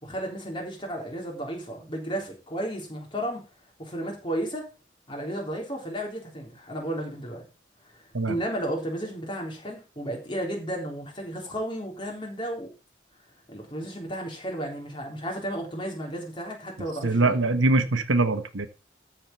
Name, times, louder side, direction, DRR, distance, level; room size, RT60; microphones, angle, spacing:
voice 1, 0.0-3.4 3.8-4.7 5.1-7.4 7.9-12.7 13.5-17.5, right 1 dB, 25° left, 0 dB, 3.6 m, -33 dB
voice 2, 17.0-18.7, right 2 dB, 85° right, 10 dB, 1.2 m, -23 dB
13.5 x 4.9 x 5.5 m, 0.32 s
head